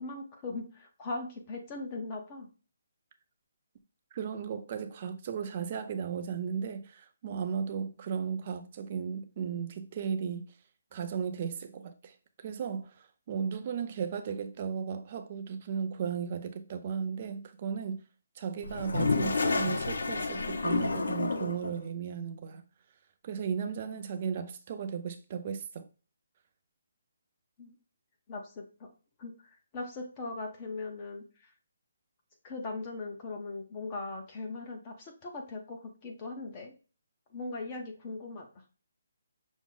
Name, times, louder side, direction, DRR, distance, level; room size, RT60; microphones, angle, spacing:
voice 1, 0.0-2.5 27.6-27.7 28.3-28.9 29.2-31.5 32.4-36.7 37.3-38.4, left 3 dB, 20° left, 0.7 m, -39 dB
voice 2, 4.1-10.5 10.9-18.0 18.4-22.6 23.2-25.9, right 6 dB, 30° right, 0.5 m, -35 dB
Toilet flush, 18.6-21.7, left 3 dB, 80° left, 0.6 m, -29 dB
6.1 x 2.1 x 3.8 m
hypercardioid pair, 170°, 0 cm